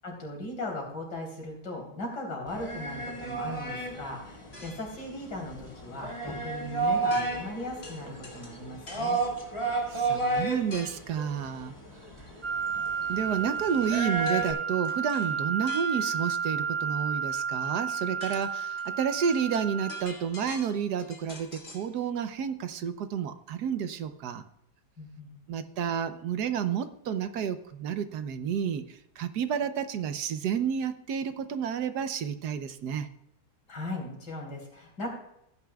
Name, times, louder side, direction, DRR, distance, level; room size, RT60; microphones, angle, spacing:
voice 1, 0.0-9.2 25.0-25.6 33.7-35.1, left 1 dB, 75° left, 0 dB, 4.0 m, -38 dB
sound 1, 2.5-14.5, right 3 dB, 15° left, 1.9 m, -32 dB
sound 2, 4.5-5.0 7.1-7.6 7.8-9.2 10.7-11.1 14.3-14.5 14.8-16.3 17.6-17.7 18.0-21.9, left 2 dB, 35° left, 2.0 m, -46 dB
voice 2, 9.9-11.7 13.1-24.4 25.5-33.1, right 7 dB, 70° right, 10 dB, 1.3 m, -30 dB
sound 3, 12.4-20.0, right 6 dB, 35° right, 0.8 m, -32 dB
16.0 x 9.6 x 2.3 m, 0.79 s
omnidirectional pair, 1.8 m